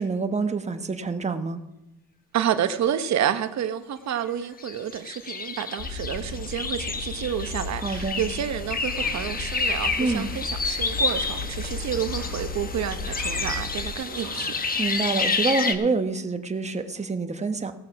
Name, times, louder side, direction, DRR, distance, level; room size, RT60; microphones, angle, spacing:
voice 1, 0.0-1.6 7.8-8.2 10.0-10.3 14.8-17.7, right 3 dB, 20° right, 1.1 m, -27 dB
voice 2, 2.3-14.5, right 9 dB, 65° right, 1.0 m, -29 dB
sound 1, 4.6-15.7, left 4 dB, 30° left, 1.1 m, -30 dB
sound 2, 5.8-13.9, left 3 dB, 85° left, 3.2 m, -36 dB
sound 3, 8.9-15.3, right 5 dB, 45° right, 1.3 m, -46 dB
17.5 x 6.4 x 5.9 m
cardioid pair, 90°, 30 cm